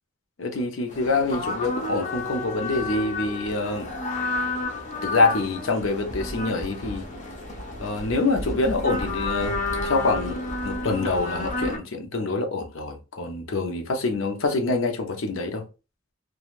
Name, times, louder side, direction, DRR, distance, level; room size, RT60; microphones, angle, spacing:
voice 1, 0.4-3.9 5.0-7.1 7.8-10.4 10.6-15.6, left 3 dB, 75° left, 0.6 m, -26 dB
sound 1, 0.9-11.8, left 2 dB, 40° left, 0.6 m, -31 dB
3.2 x 2.3 x 2.4 m
head